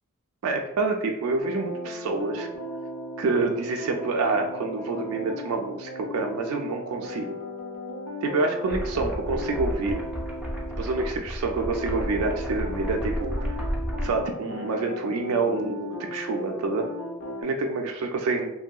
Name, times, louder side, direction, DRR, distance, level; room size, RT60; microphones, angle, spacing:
voice 1, 0.4-2.5 3.2-7.3 8.2-10.0 10.8-13.3 14.0-16.9 17.4-18.5, right 3 dB, 70° right, 3 dB, 0.3 m, -27 dB
sound 1, 1.4-11.1 11.5-17.4, equal, 85° left, 0.5 m, -36 dB
sound 2, 8.7-14.1, equal, 5° right, 0.4 m, -32 dB
3.0 x 2.7 x 2.2 m, 0.87 s
head